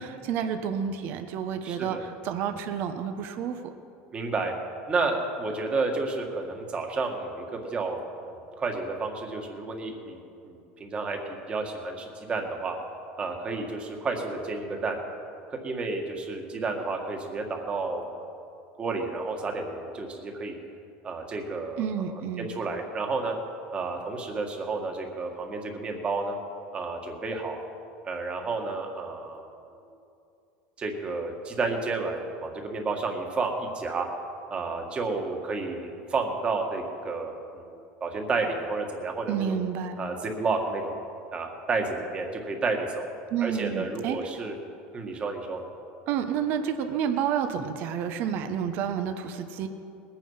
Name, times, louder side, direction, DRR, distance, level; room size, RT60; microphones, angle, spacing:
voice 1, 0.0-3.7 21.8-22.5 39.3-40.0 43.3-44.3 46.1-49.7, right 8 dB, 55° right, 7 dB, 1.1 m, -30 dB
voice 2, 1.6-2.0 4.1-4.5 4.9-8.3 8.6-10.2 10.4-12.8 13.2-15.0 15.5-18.1 18.8-20.6 21.0-22.1 22.4-23.3 23.7-26.4 26.7-27.6 28.0-29.5 30.8-34.1 34.5-39.6 40.0-40.9 41.3-43.1 43.4-44.6 44.9-45.6, right 3 dB, 25° right, 3 dB, 1.9 m, -31 dB
20.0 x 9.1 x 5.7 m, 2.6 s
supercardioid pair, 125°, 4 cm